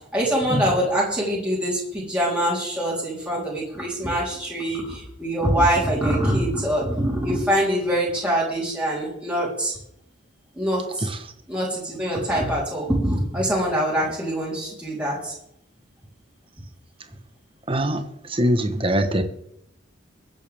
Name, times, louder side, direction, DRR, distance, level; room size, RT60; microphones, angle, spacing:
voice 1, 0.1-9.8 10.5-11.1 11.5-15.3, right 1 dB, 5° right, -6 dB, 3.6 m, -24 dB
voice 2, 17.7-19.2, equal, 30° right, 8 dB, 1.2 m, -23 dB
22.5 x 8.2 x 3.5 m, 0.76 s
head